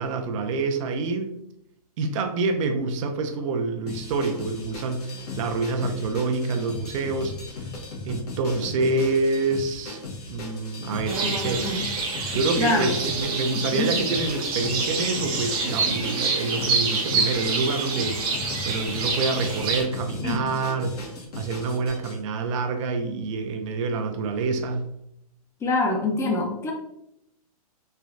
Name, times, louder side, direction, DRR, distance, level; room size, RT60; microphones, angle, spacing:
voice 1, 0.0-1.4 2.0-7.7 8.0-10.0 10.3-11.8 12.3-21.0 21.4-24.9, right 3 dB, 55° right, 6 dB, 0.5 m, -27 dB
sound 1, 3.9-22.2, left 3 dB, 75° left, 1.0 m, -37 dB
sound 2, 11.1-19.8, right 4 dB, 25° right, 0.8 m, -27 dB
voice 2, 12.6-12.9 13.6-13.9 20.2-20.5 25.6-26.7, left 2 dB, 15° left, 1 dB, 0.5 m, -25 dB
3.2 x 2.3 x 2.5 m, 0.78 s
hypercardioid pair, 130°, 20 cm